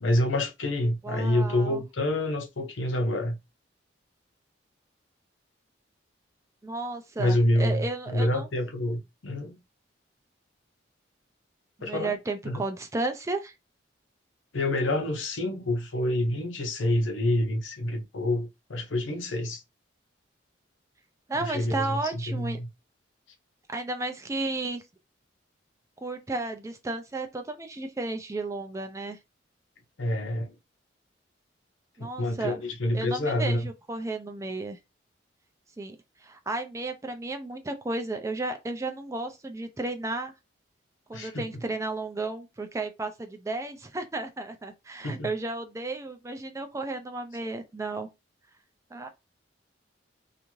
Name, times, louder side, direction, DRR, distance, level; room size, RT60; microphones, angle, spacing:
voice 1, 0.0-3.4 7.2-9.6 11.8-12.2 12.4-12.6 14.5-19.6 21.4-22.7 30.0-30.5 32.0-33.7 41.1-41.4 45.0-45.3, left 1 dB, 85° left, 0.7 m, -27 dB
voice 2, 1.0-1.8 6.6-8.5 11.8-13.5 21.3-22.6 23.7-24.8 26.0-29.2 32.0-32.6 32.9-34.8 35.8-40.3 41.1-48.1 48.9-49.1, right 2 dB, 15° right, 0.3 m, -33 dB
2.5 x 2.4 x 3.0 m
head